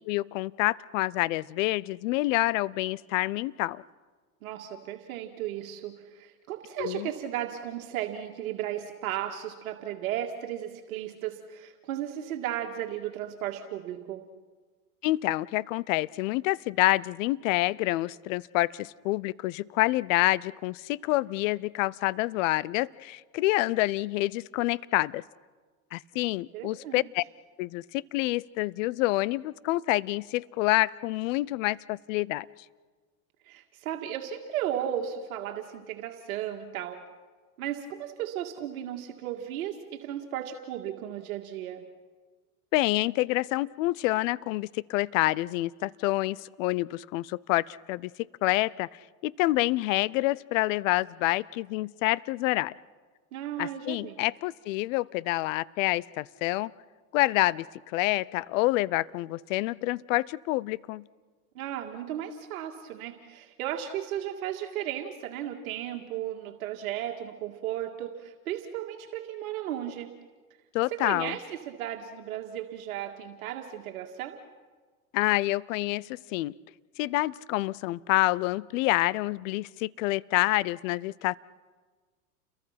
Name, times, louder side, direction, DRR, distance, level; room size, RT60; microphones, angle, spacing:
voice 1, 0.0-3.8 6.8-7.1 15.0-25.2 25.9-27.2 27.6-32.5 42.7-48.1 48.4-48.9 49.2-52.7 53.6-56.7 57.1-61.0 70.7-71.4 75.1-76.5 77.0-81.4, left 19 dB, 60° left, 22 dB, 0.7 m, -27 dB
voice 2, 4.4-14.2 26.5-27.1 33.4-37.0 37.6-41.8 53.3-54.2 61.6-70.1 70.9-74.4, right 11 dB, 70° right, 3 dB, 2.1 m, -35 dB
30.0 x 22.5 x 5.9 m, 1.4 s
hypercardioid pair, 110°, 43 cm